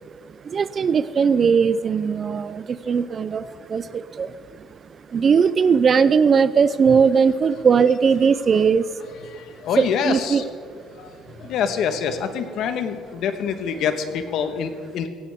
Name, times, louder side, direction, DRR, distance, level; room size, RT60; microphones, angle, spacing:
voice 1, 0.4-4.3 5.1-8.9 9.8-10.4 11.4-11.5, right 6 dB, 35° right, 15 dB, 0.4 m, -19 dB
voice 2, 9.1-10.4 10.9-15.1, left 7 dB, 65° left, 8 dB, 1.3 m, -26 dB
16.5 x 15.5 x 3.6 m, 2.1 s
cardioid pair, 115°, 0 cm